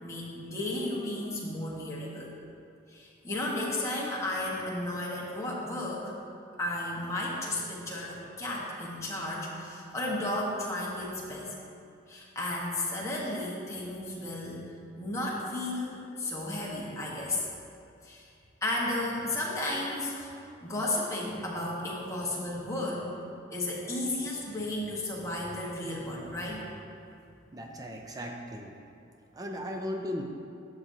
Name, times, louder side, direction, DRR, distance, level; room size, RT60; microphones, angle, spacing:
voice 1, 0.0-2.3 2.9-6.1 6.6-11.5 12.1-14.7 15.0-17.4 18.0-18.3 18.6-20.3 20.6-23.1 23.5-26.7, left 1 dB, 15° left, -5 dB, 1.2 m, -33 dB
voice 2, 27.5-28.8 29.3-30.2, left 1 dB, 20° right, 2 dB, 0.5 m, -37 dB
12.0 x 6.2 x 2.7 m, 2.5 s
head